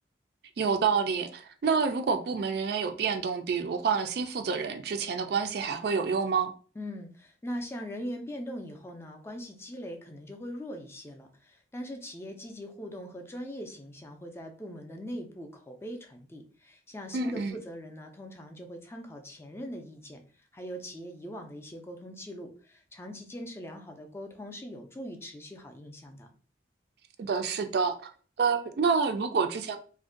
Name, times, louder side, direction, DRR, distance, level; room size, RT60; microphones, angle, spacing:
voice 1, 0.6-6.5 17.1-17.5 27.2-28.1 28.4-29.8, right 5 dB, 55° right, 0.3 m, -28 dB
voice 2, 6.8-26.3, equal, 15° left, 0.4 m, -41 dB
2.5 x 2.1 x 3.6 m
head